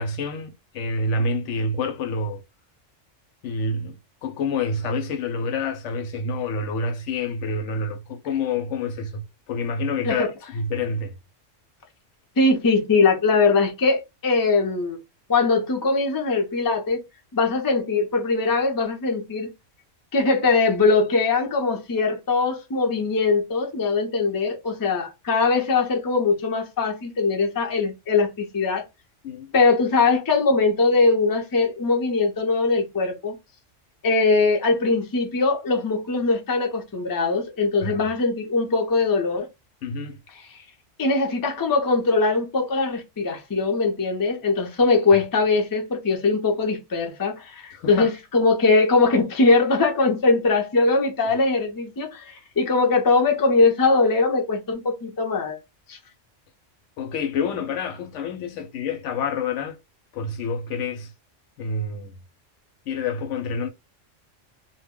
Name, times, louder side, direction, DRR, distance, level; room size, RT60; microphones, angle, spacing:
voice 1, 0.0-2.4 3.4-11.1 29.2-29.5 37.8-38.0 39.8-40.2 47.7-48.1 57.0-59.8 60.1-61.1 61.6-62.1 62.9-63.7, left 3 dB, 75° left, 0.9 m, -28 dB
voice 2, 12.4-15.0 15.3-17.0 17.3-19.5 20.1-28.8 29.5-33.4 34.0-39.5 41.0-55.6 55.9-56.0, left 3 dB, 30° left, 0.4 m, -21 dB
2.2 x 2.1 x 3.5 m
omnidirectional pair, 1.3 m